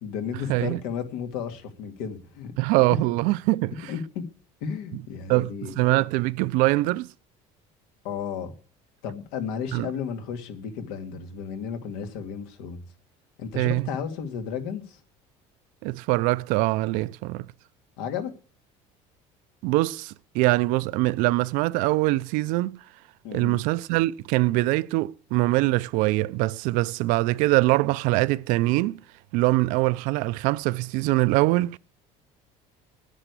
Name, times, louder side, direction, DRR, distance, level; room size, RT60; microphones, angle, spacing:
voice 1, 0.0-2.5 3.8-4.3 4.6-5.8 8.0-8.5 9.0-12.8 13.4-15.0 18.0-18.3 23.2-23.6, left 7 dB, 90° left, 2.3 m, -33 dB
voice 2, 2.6-3.9 4.9-5.0 5.3-7.1 9.7-9.9 13.5-13.9 15.8-17.5 19.6-22.8 23.3-29.0 29.3-31.8, right 20 dB, 75° right, 0.5 m, -23 dB
10.0 x 10.0 x 8.3 m
cardioid pair, 140°, 14 cm